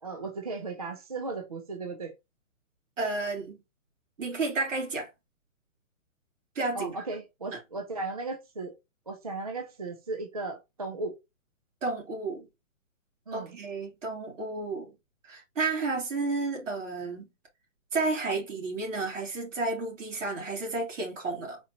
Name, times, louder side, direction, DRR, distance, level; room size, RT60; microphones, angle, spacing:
voice 1, 0.0-2.1 6.7-8.7 9.1-11.1 13.3-13.5, right 3 dB, 30° right, 0.4 m, -36 dB
voice 2, 3.0-3.6 4.2-5.1 6.5-6.9 11.8-12.5 13.3-14.9 15.3-17.3 17.9-21.6, right 3 dB, 65° right, 3.1 m, -31 dB
4.4 x 3.7 x 2.8 m
hypercardioid pair, 165°, 40 cm